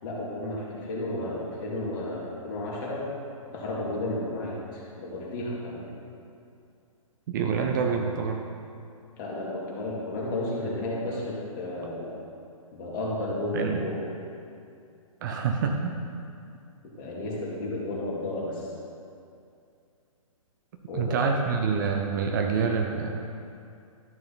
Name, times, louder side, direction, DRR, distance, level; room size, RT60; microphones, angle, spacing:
voice 1, 0.0-3.0 3.5-5.9 9.2-12.2 12.7-14.0 17.0-18.7 20.9-21.2, left 1 dB, 35° left, -5 dB, 2.4 m, -32 dB
voice 2, 7.3-8.4 13.5-13.8 15.2-15.9 20.9-23.2, right 5 dB, 35° right, 3 dB, 0.7 m, -26 dB
12.0 x 6.5 x 4.1 m, 2.5 s
figure-of-eight pair, 125°, 18 cm